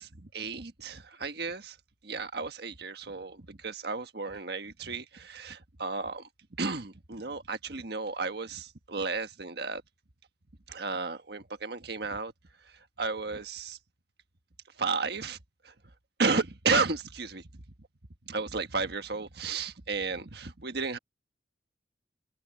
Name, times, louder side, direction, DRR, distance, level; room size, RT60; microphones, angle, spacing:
voice 1, 0.0-1.8 2.0-6.3 6.6-9.8 10.7-12.3 12.6-13.8 14.8-15.4 15.6-15.7 16.2-17.6 18.2-21.0, right 4 dB, 60° right, 1.5 m, -33 dB
head